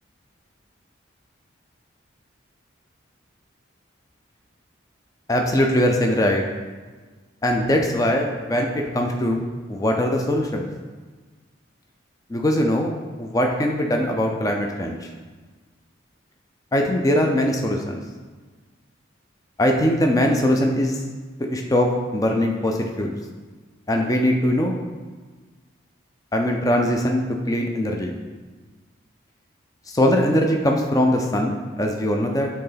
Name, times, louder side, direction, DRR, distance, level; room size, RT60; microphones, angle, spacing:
voice 1, 5.3-6.4 7.4-9.4 9.7-10.7 12.3-12.9 13.2-15.1 16.7-18.0 19.6-21.0 21.5-23.2 23.9-24.7 26.3-27.2 27.5-28.1 29.9-32.5, left 1 dB, 15° left, 2 dB, 0.4 m, -21 dB
6.7 x 3.7 x 3.9 m, 1.4 s
head